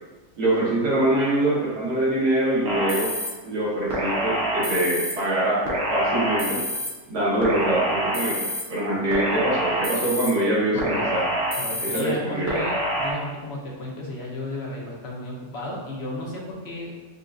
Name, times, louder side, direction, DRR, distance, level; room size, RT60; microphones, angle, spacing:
voice 1, 0.4-3.1 3.4-6.6 7.1-11.3 11.8-12.5, right 1 dB, 85° right, -8 dB, 1.7 m, -24 dB
sound 1, 2.7-3.3 3.9-5.1 5.7-6.9 7.4-8.6 9.1-10.3 10.8-12.0 12.5-13.1, right 1 dB, 50° right, 0.9 m, -26 dB
voice 2, 10.7-11.0 11.6-16.9, left 2 dB, 55° left, -3 dB, 0.8 m, -33 dB
6.4 x 2.5 x 2.3 m, 1.2 s
omnidirectional pair, 1.6 m